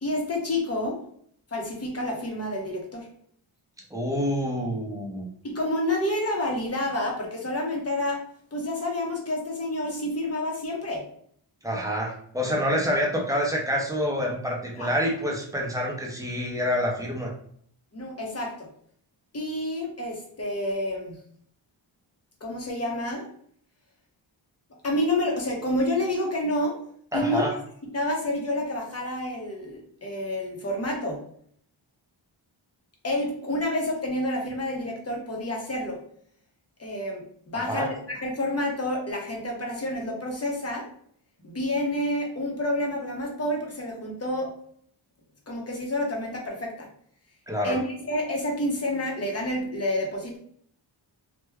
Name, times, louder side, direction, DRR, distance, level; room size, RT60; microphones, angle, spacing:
voice 1, 0.0-1.0 1.5-3.1 5.4-8.2 8.5-11.1 14.8-14.9 17.9-18.7 19.3-21.2 22.4-23.3 24.8-26.8 27.1-27.4 27.9-31.2 33.0-36.0 36.8-40.9 41.4-44.5 45.5-46.9 47.6-50.4, left 1 dB, 30° left, 0 dB, 0.8 m, -29 dB
voice 2, 3.9-5.3 11.6-17.3 27.1-27.5 37.7-37.9 47.5-47.8, equal, 10° right, -2 dB, 0.6 m, -27 dB
3.3 x 2.1 x 3.4 m, 0.63 s
wide cardioid pair, 160°, 47 cm